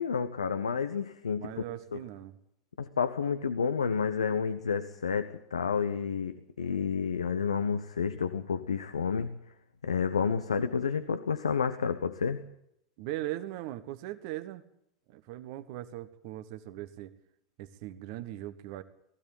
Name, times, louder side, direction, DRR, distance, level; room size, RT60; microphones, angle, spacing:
voice 1, 0.0-1.5 1.9-2.0 2.8-9.3 9.8-12.4, left 6 dB, 80° left, 10 dB, 1.0 m, -30 dB
voice 2, 1.3-2.4 13.0-14.6 15.1-17.1 17.6-18.8, right 15 dB, 50° right, 11 dB, 1.4 m, -39 dB
19.5 x 16.0 x 8.9 m, 0.77 s
figure-of-eight pair, 85°, 3 cm